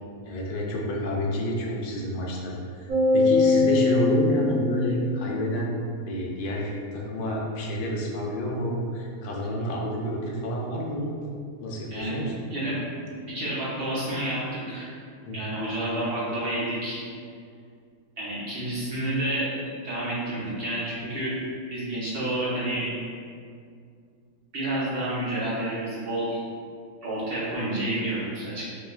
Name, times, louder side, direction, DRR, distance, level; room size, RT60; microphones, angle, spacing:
voice 1, 0.2-5.7 6.0-11.1 11.6-12.4 15.3-15.4, equal, 75° left, -2 dB, 1.2 m, -29 dB
sound 1, 2.9-5.4, left 3 dB, 80° right, 1.7 m, -22 dB
voice 2, 13.3-14.9 15.3-17.0 18.2-19.5 19.8-21.4 21.7-22.9 24.5-26.4 27.0-28.6, right 1 dB, 50° right, -9 dB, 0.8 m, -29 dB
4.4 x 2.3 x 2.4 m, 2.2 s
omnidirectional pair, 2.0 m